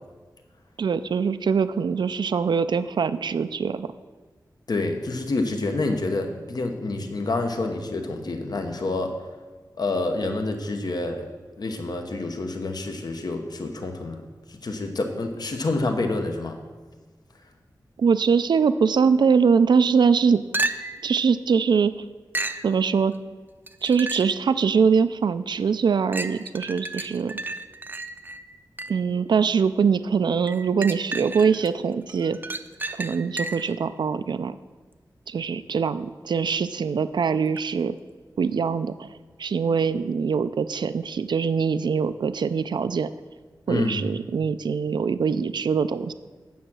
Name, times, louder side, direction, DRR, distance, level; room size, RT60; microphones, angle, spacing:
voice 1, 0.8-3.9 18.0-20.4 21.0-21.9 22.6-23.1 23.8-27.4 28.9-32.4 33.0-34.5 35.3-38.0 38.4-39.1 39.4-43.1 43.7-46.1, right 6 dB, 80° right, 12 dB, 0.4 m, -23 dB
voice 2, 4.7-9.1 9.8-11.3 11.6-16.6 43.7-44.0, left 2 dB, 65° left, 4 dB, 1.0 m, -28 dB
sound 1, 20.5-21.1 22.3-22.7 23.7-24.4 25.0-25.1 26.1-29.1 30.5-31.7 32.1-33.8 37.6-37.7, right 2 dB, 25° right, 0.5 m, -32 dB
9.3 x 7.3 x 6.1 m, 1.4 s
wide cardioid pair, 90°, 7 cm